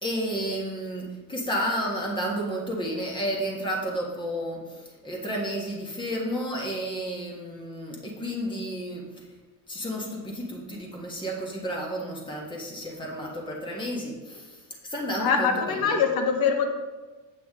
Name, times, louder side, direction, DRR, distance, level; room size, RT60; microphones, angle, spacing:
voice 1, 0.0-9.0 9.7-16.0, equal, 10° left, -2 dB, 1.4 m, -31 dB
voice 2, 15.2-16.7, left 6 dB, 50° left, 3 dB, 1.2 m, -23 dB
8.4 x 8.2 x 3.6 m, 1.3 s
cardioid pair, 165°, 43 cm